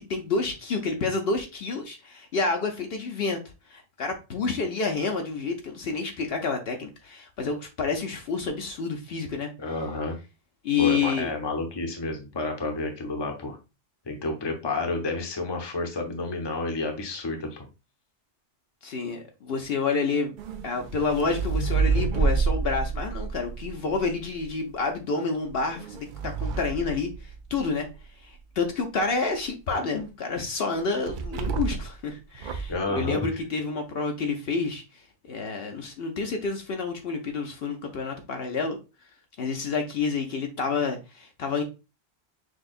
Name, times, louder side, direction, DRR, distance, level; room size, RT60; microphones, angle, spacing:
voice 1, 0.0-3.4 3.7-9.5 10.6-11.3 18.8-20.4 20.6-27.9 28.2-35.0 35.3-38.8 39.4-41.6, left 4 dB, 65° left, 0.8 m, -29 dB
voice 2, 9.6-10.2 10.8-13.6 14.1-17.7 32.7-33.2, left 3 dB, 25° left, 0.7 m, -30 dB
sound 1, 20.4-24.5 25.4-27.8 31.1-32.0 32.3-32.8, right 4 dB, 60° right, 0.6 m, -28 dB
6.2 x 2.3 x 2.4 m
omnidirectional pair, 1.2 m